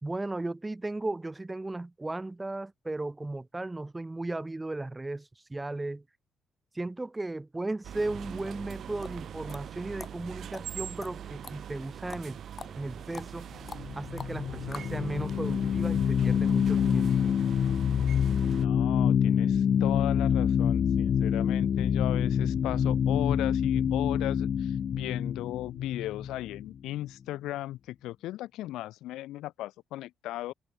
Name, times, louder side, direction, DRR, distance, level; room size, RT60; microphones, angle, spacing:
voice 1, 0.0-6.0 6.7-12.4 12.7-13.5 14.0-17.3, right 2 dB, 15° right, 3.5 m, -36 dB
sound 1, 7.8-18.7, right 9 dB, 65° right, 6.7 m, -42 dB
sound 2, 8.7-15.0, left 5 dB, 40° left, 5.1 m, -46 dB
sound 3, 13.6-26.9, left 8 dB, 55° left, 1.2 m, -26 dB
voice 2, 18.5-30.5, left 15 dB, 90° left, 6.5 m, -36 dB
open air
cardioid pair, 90°, 0 cm